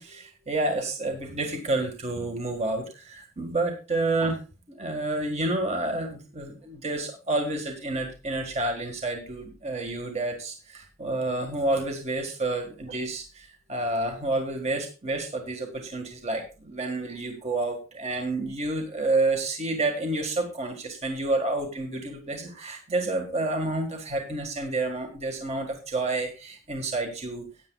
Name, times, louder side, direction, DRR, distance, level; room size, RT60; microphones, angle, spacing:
voice 1, 0.0-4.4 4.7-27.5, right 2 dB, 35° right, 3 dB, 1.7 m, -29 dB
16.5 x 9.4 x 2.4 m, 0.33 s
head